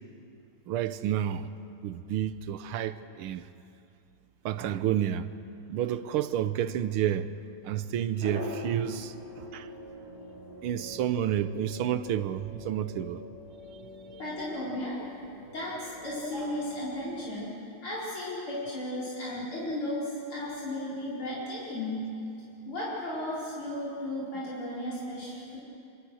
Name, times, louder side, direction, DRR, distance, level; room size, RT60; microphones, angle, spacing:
voice 1, 0.7-1.5 1.8-3.5 4.5-5.3 5.7-7.3 7.7-9.7 10.6-13.2, right 10 dB, 85° right, 1.7 m, -30 dB
sound 1, 8.2-17.3, left 1 dB, 50° left, 8.4 m, -44 dB
voice 2, 14.2-17.6 17.8-22.1 22.7-25.6, left 1 dB, 80° left, 5.5 m, -35 dB
26.0 x 26.0 x 6.4 m
omnidirectional pair, 2.3 m